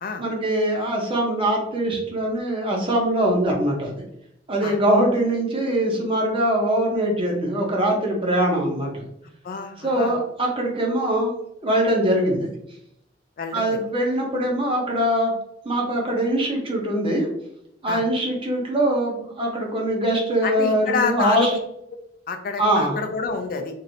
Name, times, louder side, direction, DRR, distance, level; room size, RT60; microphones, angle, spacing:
voice 1, 0.2-3.9 4.5-9.0 9.8-11.3 11.6-12.5 13.5-15.3 15.6-17.3 17.8-21.5 22.6-23.0, right 1 dB, 30° right, -1 dB, 0.8 m, -22 dB
voice 2, 9.4-10.2 13.4-13.7 17.9-18.0 20.4-21.5 22.3-23.8, left 4 dB, 50° left, 6 dB, 0.4 m, -27 dB
3.1 x 2.6 x 2.6 m, 0.77 s
head